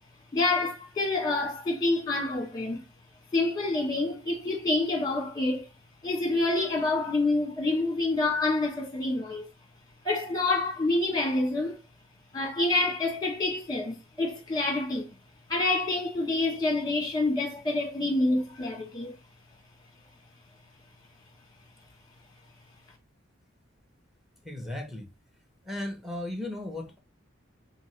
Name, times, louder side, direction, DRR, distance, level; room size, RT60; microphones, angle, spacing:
voice 1, 0.3-2.8 3.3-5.7 6.0-9.5 10.0-11.8 12.3-15.1 15.5-19.1, left 2 dB, 20° left, 1.4 m, -27 dB
voice 2, 24.4-25.1 25.6-27.0, left 1 dB, ahead, 1.2 m, -36 dB
3.7 x 3.6 x 3.3 m
head